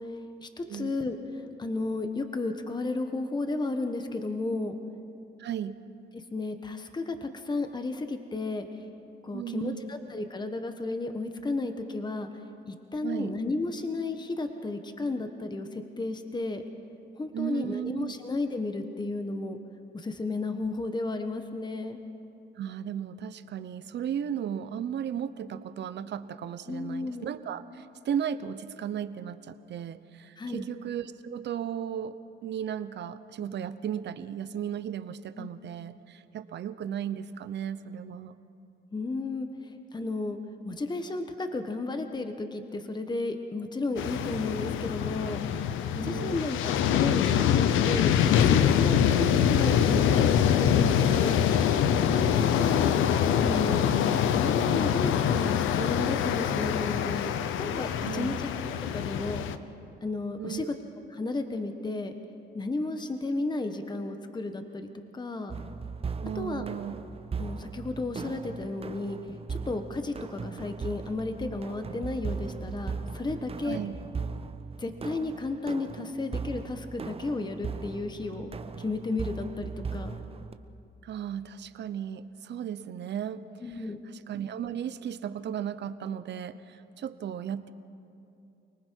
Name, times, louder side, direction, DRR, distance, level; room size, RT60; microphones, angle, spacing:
voice 1, 0.0-4.8 6.1-8.8 9.2-12.3 12.7-16.6 17.2-19.6 19.9-22.0 26.7-27.3 30.4-30.7 35.4-35.5 38.9-40.4 40.6-45.4 45.9-51.4 51.9-53.0 53.4-53.9 54.3-58.5 58.9-59.5 60.0-60.6 61.1-62.1 62.5-64.9 65.1-65.5 66.3-66.6 67.4-69.2 69.5-73.8 74.8-78.5 78.8-80.2 83.6-84.0, left 2 dB, 20° left, 7 dB, 1.2 m, -33 dB
voice 2, 5.4-5.8 9.3-9.9 13.0-13.3 17.3-18.1 22.6-38.3 46.0-46.4 50.8-51.2 58.0-58.4 60.4-60.7 66.2-67.0 73.6-73.9 81.0-87.7, right 9 dB, 60° right, 13 dB, 0.9 m, -35 dB
sound 1, 44.0-59.6, left 9 dB, 90° left, 0.8 m, -24 dB
sound 2, 65.5-80.5, right 5 dB, 30° right, 0.8 m, -38 dB
29.0 x 19.5 x 4.6 m, 2.7 s
cardioid pair, 90°, 20 cm